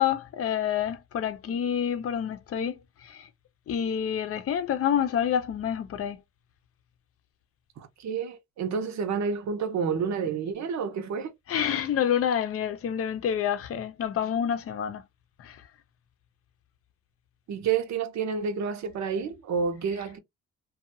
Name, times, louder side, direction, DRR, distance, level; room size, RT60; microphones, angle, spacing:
voice 1, 0.0-3.3 3.7-6.2 11.5-15.0 15.4-15.6, left 9 dB, 50° left, 0.6 m, -28 dB
voice 2, 7.8-11.3 17.5-20.2, right 6 dB, 65° right, 0.8 m, -29 dB
2.6 x 2.3 x 2.7 m
cardioid pair, 90°, 30 cm